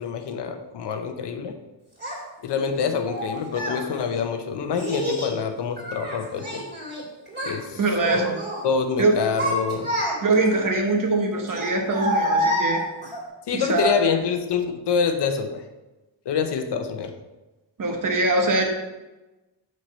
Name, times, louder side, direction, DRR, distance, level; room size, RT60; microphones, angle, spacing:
voice 1, 0.0-1.6 2.4-6.7 7.4-7.8 8.1-8.2 8.6-9.9 13.5-15.6 16.3-17.1, left 6 dB, 65° left, 7 dB, 0.8 m, -26 dB
Child speech kid speaking, 2.0-2.2 3.1-3.8 4.7-5.3 5.8-7.0 7.3-7.6 8.0-8.6 9.1-10.5 11.5-13.2, equal, 20° right, 2.6 m, -27 dB
voice 2, 7.7-8.4 9.0-9.1 10.2-12.8 13.5-13.9 17.8-18.6, right 2 dB, 45° right, 2 dB, 1.2 m, -22 dB
6.6 x 6.2 x 4.2 m, 1.1 s
wide cardioid pair, 170°, 45 cm